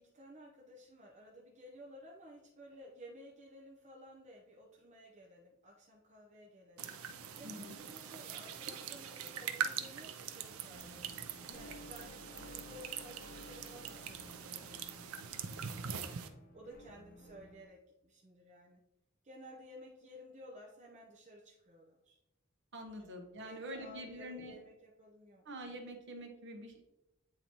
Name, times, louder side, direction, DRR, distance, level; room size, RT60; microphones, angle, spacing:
voice 1, 0.0-6.9 7.4-11.1 11.5-16.2 16.5-18.8 19.2-22.2 23.4-25.4, equal, 30° right, -2 dB, 0.7 m, -55 dB
sound 1, 6.8-16.3, right 7 dB, 70° right, 0.5 m, -43 dB
voice 2, 7.4-7.8 22.7-24.5 25.5-26.8, equal, 55° right, 3 dB, 1.0 m, -46 dB
sound 2, 10.7-17.6, left 1 dB, 40° left, 0.6 m, -55 dB
8.5 x 3.9 x 2.9 m, 0.92 s
head